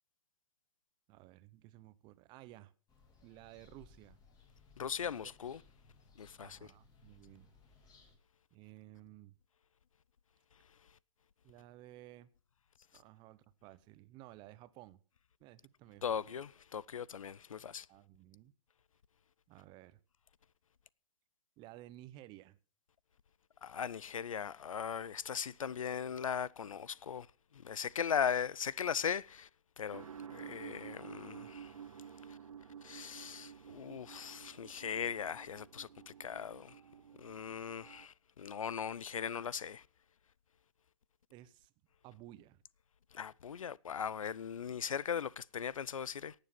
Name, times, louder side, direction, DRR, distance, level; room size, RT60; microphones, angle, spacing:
voice 1, 1.1-2.7 3.2-4.2 5.2-5.3 6.4-7.5 8.5-9.3 11.4-12.3 12.9-15.0 15.4-16.2 17.9-18.5 19.5-20.0 21.6-22.6 31.4-31.5 41.3-41.7 42.0-42.6, right 15 dB, 25° right, 0.8 m, -55 dB
sound 1, 2.9-8.2, left 4 dB, 25° left, 3.3 m, -63 dB
voice 2, 4.8-5.6 6.2-6.6 16.0-17.9 23.6-27.3 27.5-29.5 29.8-31.7 32.3-32.4 32.8-36.8 37.2-39.8 43.1-46.3, left 7 dB, 80° left, 0.5 m, -39 dB
sound 2, 29.9-38.1, right 8 dB, 80° right, 0.7 m, -51 dB
18.0 x 6.8 x 6.0 m
hypercardioid pair, 125°, 17 cm